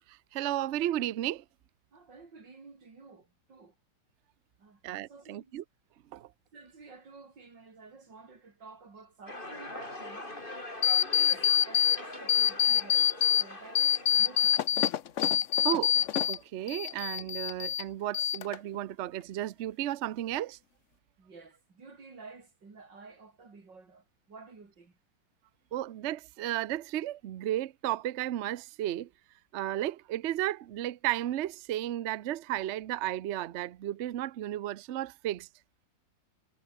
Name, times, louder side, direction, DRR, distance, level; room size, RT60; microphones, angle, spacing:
voice 1, 0.1-1.4 4.8-5.6 6.1-6.3 15.6-15.9 16.3-20.6 25.7-29.1 29.5-35.5, right 13 dB, 85° right, 0.6 m, -33 dB
voice 2, 1.9-3.8 4.6-4.8 5.1-5.5 6.5-10.4 11.1-13.1 13.4-14.6 21.2-25.0, right 4 dB, 65° right, 4.3 m, -51 dB
sound 1, 9.3-14.6, left 2 dB, 25° left, 4.7 m, -43 dB
sound 2, 10.8-12.0 12.3-13.4 13.8-16.4 16.7-17.8 18.1-18.8, left 10 dB, 55° left, 0.9 m, -25 dB
omnidirectional pair, 2.1 m